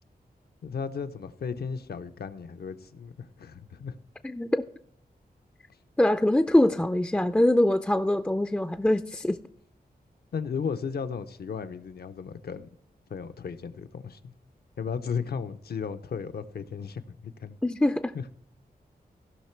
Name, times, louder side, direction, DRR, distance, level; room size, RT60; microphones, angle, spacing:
voice 1, 0.6-4.0 10.3-12.7 13.1-14.3 14.8-17.6 18.1-18.2, left 6 dB, 80° left, 0.7 m, -35 dB
voice 2, 4.2-4.6 6.0-9.4 17.6-18.1, left 1 dB, 10° left, 0.3 m, -23 dB
15.5 x 5.8 x 4.5 m
wide cardioid pair, 125°, 16 cm